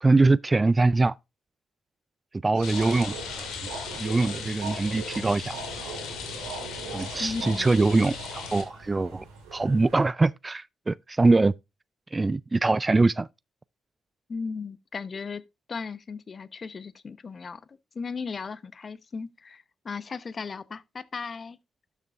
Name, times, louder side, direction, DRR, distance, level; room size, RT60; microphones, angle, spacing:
voice 1, 0.0-1.1 2.4-3.5 3.9-5.6 6.9-9.2 9.5-11.5 12.1-13.3, right 3 dB, 25° right, 0.3 m, -23 dB
sound 1, 2.5-10.0, right 4 dB, 80° right, 3.2 m, -40 dB
Rain, 2.6-8.6, left 6 dB, 70° left, 2.3 m, -38 dB
voice 2, 7.2-7.7 14.3-21.6, left 5 dB, 45° left, 0.7 m, -36 dB
12.0 x 7.0 x 2.4 m
hypercardioid pair, 45°, 0 cm